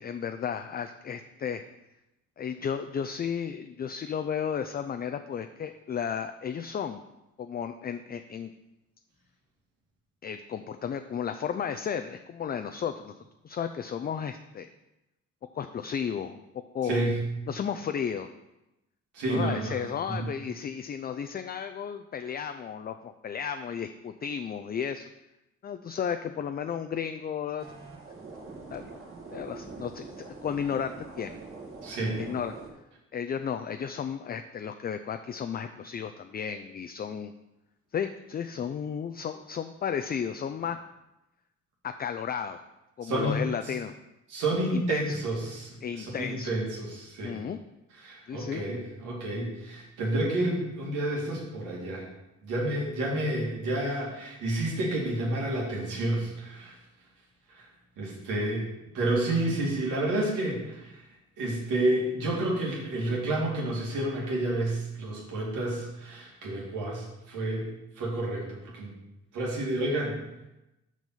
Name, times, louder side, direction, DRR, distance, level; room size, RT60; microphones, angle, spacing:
voice 1, 0.0-1.6 2.4-7.0 7.4-8.5 10.2-13.1 13.4-14.7 15.5-16.4 16.7-17.0 17.5-18.3 19.3-25.1 25.6-27.7 28.7-28.9 29.3-31.4 32.2-32.5 33.1-37.3 37.9-40.8 41.8-42.6 43.0-43.9 44.7-45.2 45.8-46.6 47.2-47.6 48.3-48.6, left 7 dB, 30° left, 8 dB, 0.4 m, -33 dB
voice 2, 16.8-17.2 19.1-19.8 20.0-20.2 31.8-32.2 43.0-43.4 44.3-47.4 48.0-52.1 52.4-56.7 57.6-57.7 58.0-58.7 58.9-61.0 61.4-67.7 68.0-68.9 69.3-70.2, right 1 dB, 90° right, -3 dB, 2.4 m, -30 dB
sound 1, 27.6-32.7, right 3 dB, 45° right, 1.9 m, -44 dB
6.1 x 5.3 x 5.7 m, 0.95 s
cardioid pair, 90°, 30 cm